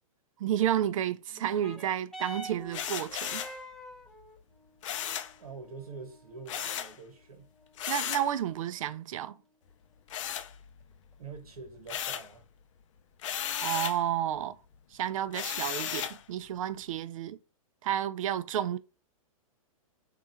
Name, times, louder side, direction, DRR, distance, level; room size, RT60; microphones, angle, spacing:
voice 1, 0.4-3.4 7.9-9.4 13.6-14.5 14.9-17.4 17.8-18.8, right 11 dB, 65° right, 0.4 m, -31 dB
sound 1, 1.3-10.3 11.1-11.2, right 1 dB, 5° left, 0.4 m, -49 dB
sound 2, 2.7-3.6 4.8-5.4 6.5-7.0 7.8-8.3 10.1-11.0 11.3-12.3 13.2-14.0 15.3-16.2, left 10 dB, 60° left, 0.5 m, -35 dB
voice 2, 5.4-7.5 11.2-12.5, right 5 dB, 90° right, 1.2 m, -45 dB
3.7 x 2.4 x 4.2 m
hypercardioid pair, 130°, 18 cm